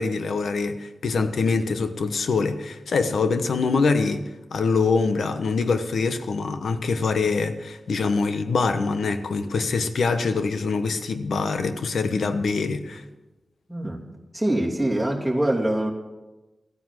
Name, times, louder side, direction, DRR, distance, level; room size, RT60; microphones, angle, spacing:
voice 1, 0.0-13.0, left 4 dB, 90° left, 1.0 m, -24 dB
voice 2, 13.7-14.0 14.3-15.9, right 1 dB, ahead, 2.8 m, -24 dB
14.5 x 9.6 x 7.6 m
wide cardioid pair, 115°, 0 cm